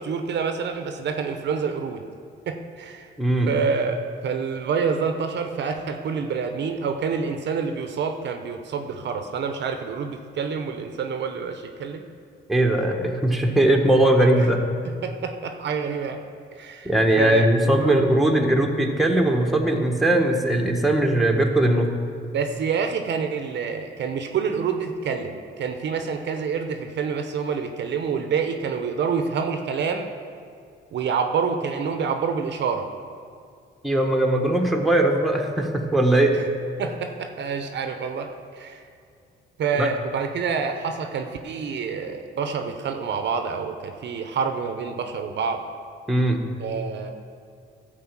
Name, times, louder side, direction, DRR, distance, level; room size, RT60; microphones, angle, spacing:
voice 1, 0.0-2.0 2.5-3.1 3.5-12.0 14.8-16.2 16.6-18.0 22.3-30.1 30.9-32.9 36.3-36.4 36.8-38.8 39.6-45.6 46.6-47.1, right 5 dB, 60° right, 6 dB, 0.8 m, -27 dB
voice 2, 3.2-3.5 12.5-14.6 16.8-21.9 33.8-36.3 39.8-39.9 46.1-46.4, right 1 dB, ahead, 1 dB, 1.3 m, -20 dB
12.5 x 5.2 x 7.4 m, 2.3 s
cardioid pair, 90°, 20 cm